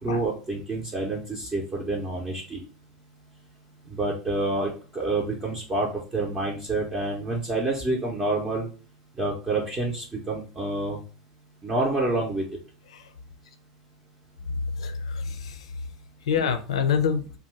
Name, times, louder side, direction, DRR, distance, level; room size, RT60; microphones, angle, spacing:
voice 1, 0.0-2.6 3.8-8.7 9.2-11.0 11.6-12.4, right 2 dB, 25° right, -2 dB, 0.7 m, -28 dB
voice 2, 14.8-15.6 16.3-17.3, left 6 dB, 85° left, 9 dB, 0.4 m, -26 dB
2.7 x 2.2 x 3.2 m, 0.37 s
hypercardioid pair, 95°, 3 cm